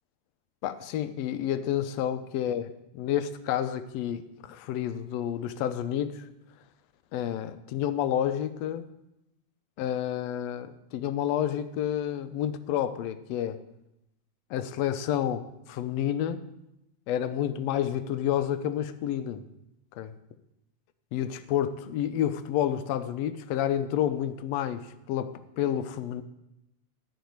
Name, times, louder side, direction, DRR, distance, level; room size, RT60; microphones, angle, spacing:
voice 1, 0.6-6.2 7.1-8.9 9.8-13.6 14.5-16.4 17.1-19.4 20.0-20.1 21.1-26.2, left 10 dB, 70° left, 12 dB, 1.7 m, -30 dB
15.0 x 5.3 x 9.5 m, 0.86 s
omnidirectional pair, 3.4 m